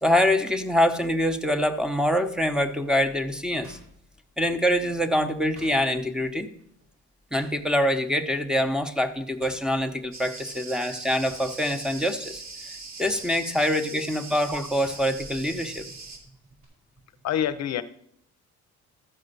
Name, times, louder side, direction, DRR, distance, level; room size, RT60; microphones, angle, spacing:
voice 1, 0.0-3.8 4.4-6.5 7.3-12.4 12.7-15.9, equal, ahead, 4 dB, 0.9 m, -25 dB
sound 1, 3.3-4.7 5.0-7.9 8.3-8.5 8.8-10.8 11.1-15.5 15.7-16.6, right 2 dB, 85° right, 5.5 m, -53 dB
Cricket, 10.1-16.2, right 3 dB, 60° right, 2.2 m, -41 dB
voice 2, 17.2-17.8, left 10 dB, 60° left, 10 dB, 0.6 m, -26 dB
13.5 x 4.9 x 6.7 m, 0.71 s
cardioid pair, 90°, 30 cm